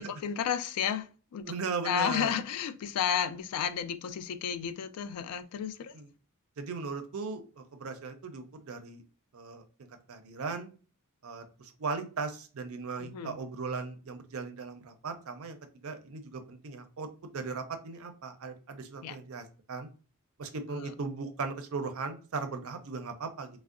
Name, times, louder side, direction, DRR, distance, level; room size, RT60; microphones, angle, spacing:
voice 1, 0.0-1.5 1.8-5.9 13.0-13.4 19.0-19.2 20.7-20.9, left 8 dB, 85° left, 0.3 m, -32 dB
voice 2, 1.5-2.3 5.9-6.1 6.6-9.0 9.3-9.6 10.1-10.7 11.2-15.6 15.8-17.1 17.3-19.9 20.4-23.5, right 4 dB, 70° right, 0.5 m, -37 dB
3.5 x 2.1 x 2.4 m
head